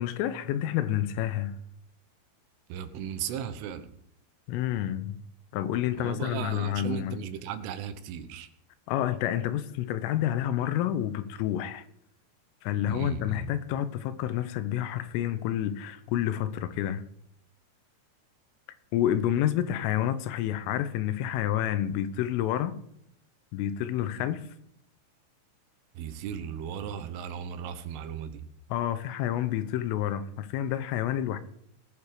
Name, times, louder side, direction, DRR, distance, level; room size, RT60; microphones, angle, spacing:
voice 1, 0.0-1.6 4.5-5.2 5.5-7.2 8.9-11.8 12.6-17.0 18.9-22.7 23.5-24.5 28.7-31.4, left 11 dB, 85° left, 3.4 m, -29 dB
voice 2, 2.7-3.9 5.9-8.5 12.9-13.5 26.0-28.4, right 8 dB, 80° right, 3.6 m, -36 dB
19.5 x 7.2 x 4.9 m
omnidirectional pair, 5.7 m